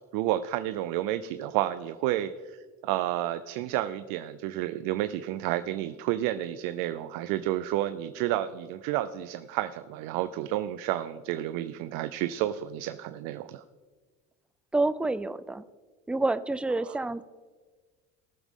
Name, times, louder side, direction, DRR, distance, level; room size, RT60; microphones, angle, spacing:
voice 1, 0.1-13.6 16.8-17.0, right 13 dB, 80° right, 12 dB, 0.6 m, -31 dB
voice 2, 14.7-15.6 16.1-17.2, right 2 dB, 5° right, 14 dB, 0.3 m, -28 dB
19.0 x 7.2 x 3.7 m, 1.4 s
cardioid pair, 110°, 34 cm